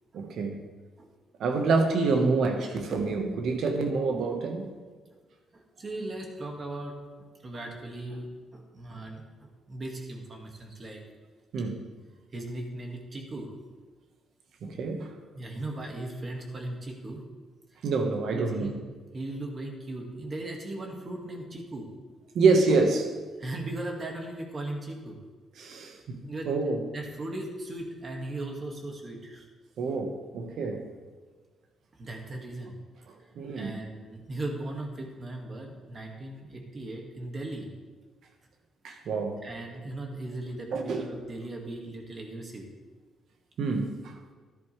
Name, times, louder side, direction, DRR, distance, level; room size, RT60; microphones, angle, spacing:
voice 1, 0.1-0.6 1.4-4.7 11.5-11.8 14.6-15.1 17.8-18.7 22.3-23.1 25.6-26.2 26.4-26.8 29.8-30.8 33.3-33.8 38.8-39.4 40.7-41.1 43.6-44.1, right 4 dB, 70° right, 4 dB, 1.5 m, -27 dB
voice 2, 5.5-7.0 7.4-9.2 9.7-11.0 12.3-13.5 14.7-14.8 15.3-17.2 18.3-18.8 19.1-21.9 23.4-25.2 26.2-26.5 26.9-29.5 32.0-32.8 33.6-37.7 39.4-42.7, right 2 dB, 35° right, 1 dB, 2.1 m, -38 dB
13.0 x 11.0 x 3.4 m, 1.4 s
cardioid pair, 95°, 0 cm